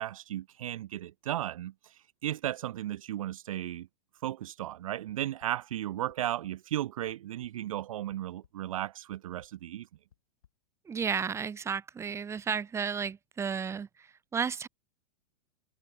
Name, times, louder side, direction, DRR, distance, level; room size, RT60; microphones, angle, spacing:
voice 1, 0.0-3.9 4.2-9.9, right 13 dB, 60° right, 0.4 m, -35 dB
sound 1, 5.1-5.5 6.1-6.5 6.9-7.5 8.1-8.5 9.1-9.5 10.1-10.5, left 10 dB, 65° left, 3.8 m, -62 dB
voice 2, 10.9-14.7, right 6 dB, 15° right, 1.0 m, -33 dB
figure-of-eight pair, 95°, 20 cm